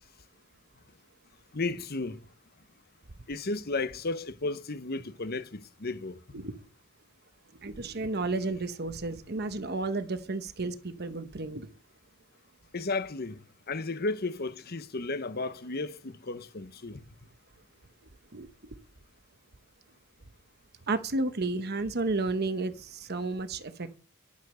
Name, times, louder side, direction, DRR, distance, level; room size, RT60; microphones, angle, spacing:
voice 1, 1.5-2.2 3.3-6.4 12.7-17.0, left 3 dB, 45° left, 0.9 m, -34 dB
voice 2, 7.6-11.7 18.3-18.5 20.9-24.0, right 3 dB, 50° right, 1.0 m, -32 dB
10.5 x 7.3 x 6.3 m
head